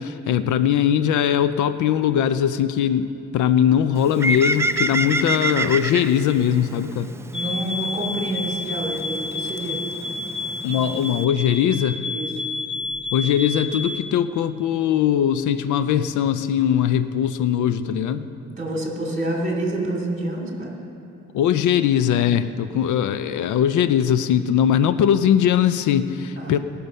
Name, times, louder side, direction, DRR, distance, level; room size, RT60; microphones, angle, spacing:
voice 1, 0.0-7.1 10.6-12.0 13.1-18.3 21.3-26.6, left 9 dB, 75° left, 12 dB, 0.5 m, -20 dB
Bird, 3.9-11.2, right 2 dB, 10° right, 0.3 m, -29 dB
sound 1, 7.3-14.1, left 3 dB, 15° left, 1.1 m, -30 dB
voice 2, 7.3-9.8 12.0-12.3 18.6-20.7 26.4-26.6, right 1 dB, 25° right, 0 dB, 3.0 m, -28 dB
19.5 x 6.7 x 5.4 m, 2.7 s
cardioid pair, 90°, 30 cm